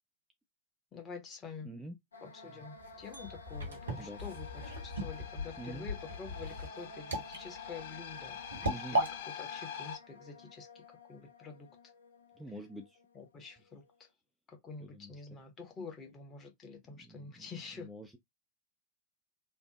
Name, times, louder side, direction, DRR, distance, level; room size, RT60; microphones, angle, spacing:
voice 1, 0.9-1.7 2.2-4.5 4.8-8.4 8.6-9.1 9.4-10.8 11.1-11.7 13.1-13.8 14.5-17.9, left 5 dB, 25° left, 1.1 m, -47 dB
voice 2, 1.6-2.0 4.0-4.2 5.6-5.9 8.7-9.0 12.4-13.0 14.8-15.2 17.0-18.2, right 1 dB, 5° right, 0.4 m, -46 dB
sound 1, 2.1-14.0, left 3 dB, 75° left, 0.6 m, -53 dB
sound 2, 2.8-9.1, right 1 dB, 70° right, 1.1 m, -37 dB
sound 3, 3.9-10.0, left 8 dB, 50° left, 1.2 m, -46 dB
3.3 x 2.0 x 2.9 m
figure-of-eight pair, 90°, 0 cm